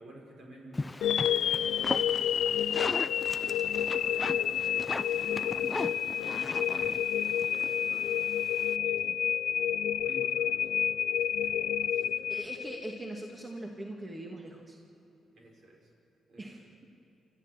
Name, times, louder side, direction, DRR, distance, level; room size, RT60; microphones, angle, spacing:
voice 1, 0.0-3.0 3.7-4.9 5.5-6.3 6.7-8.3 8.8-9.3 9.9-10.7 11.1-12.3 15.3-15.9 16.3-16.6, right 1 dB, 65° right, -1 dB, 5.5 m, -53 dB
sound 1, 0.7-8.8, left 2 dB, 25° left, 0.5 m, -39 dB
sound 2, 1.0-13.1, left 9 dB, 75° left, 0.5 m, -29 dB
voice 2, 12.3-14.8 16.4-16.7, right 1 dB, 25° right, 1 dB, 2.2 m, -42 dB
25.5 x 14.0 x 7.5 m, 3.0 s
supercardioid pair, 60°, 0 cm